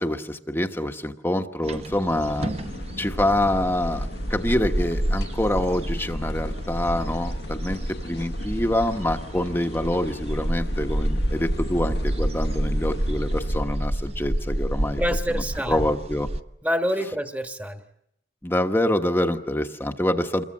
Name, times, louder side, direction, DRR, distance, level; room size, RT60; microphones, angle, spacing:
voice 1, 0.0-2.5 3.0-15.0 15.3-16.3 18.4-20.4, left 1 dB, 10° left, 5 dB, 1.1 m, -26 dB
sound 1, 1.6-16.4, right 1 dB, 35° right, 0.9 m, -29 dB
sound 2, 2.1-13.6, left 1 dB, 60° left, 1.1 m, -38 dB
voice 2, 15.0-15.9 16.6-17.8, equal, 10° right, 5 dB, 1.4 m, -27 dB
28.0 x 22.5 x 7.4 m, 0.79 s
head